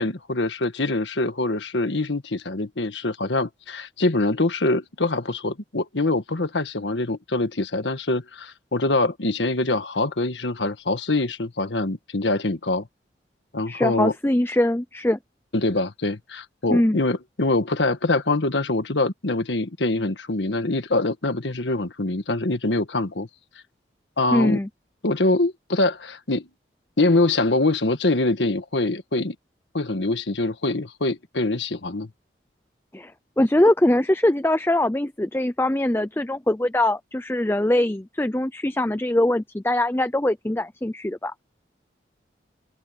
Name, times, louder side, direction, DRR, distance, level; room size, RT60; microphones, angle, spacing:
voice 1, 0.0-12.9 13.5-14.1 15.5-23.3 24.2-24.6 25.0-26.5 27.0-29.3 29.7-32.1, left 2 dB, 85° left, 1.6 m, -24 dB
voice 2, 13.7-15.2 16.7-17.0 24.3-24.7 32.9-33.1 33.4-41.3, left 1 dB, 15° left, 0.5 m, -22 dB
open air
head